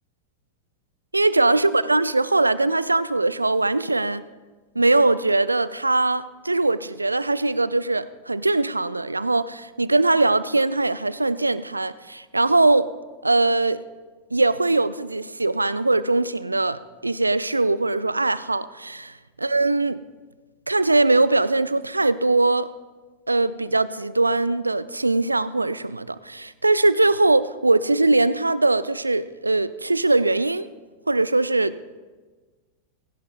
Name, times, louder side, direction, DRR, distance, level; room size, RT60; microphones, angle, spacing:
voice 1, 1.1-4.2 4.8-12.9 13.2-13.8 14.3-20.0 20.7-22.7 23.3-30.7 31.1-31.8, right 2 dB, 80° right, 16 dB, 0.4 m, -21 dB
19.0 x 16.5 x 2.4 m, 1.3 s
figure-of-eight pair, 90°, 0 cm